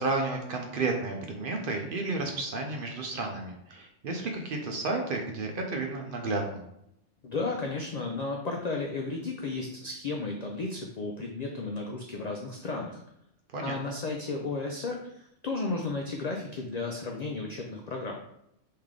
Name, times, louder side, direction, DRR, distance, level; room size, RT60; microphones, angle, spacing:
voice 1, 0.0-6.6 13.5-13.9, right 3 dB, 55° right, 2 dB, 0.7 m, -32 dB
voice 2, 7.2-13.0 13.6-15.0 15.4-18.2, left 3 dB, 75° left, 1 dB, 0.3 m, -33 dB
3.2 x 2.8 x 3.6 m, 0.79 s
omnidirectional pair, 1.3 m